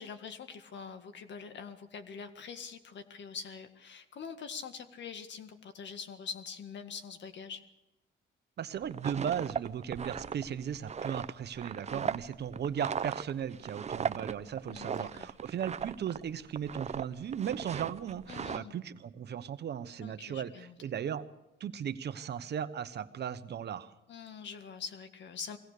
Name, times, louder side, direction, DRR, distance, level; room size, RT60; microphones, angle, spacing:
voice 1, 0.0-7.6 11.9-12.2 14.7-15.3 18.3-18.7 20.0-20.8 24.1-25.6, left 6 dB, 65° left, 8 dB, 1.9 m, -44 dB
voice 2, 8.6-21.3 21.6-23.9, right 8 dB, 55° right, 12 dB, 1.1 m, -37 dB
sound 1, 8.8-16.2 16.5-17.0 17.3-18.6, right 7 dB, 35° right, 0.6 m, -37 dB
22.5 x 17.5 x 6.7 m, 0.96 s
cardioid pair, 90°, 20 cm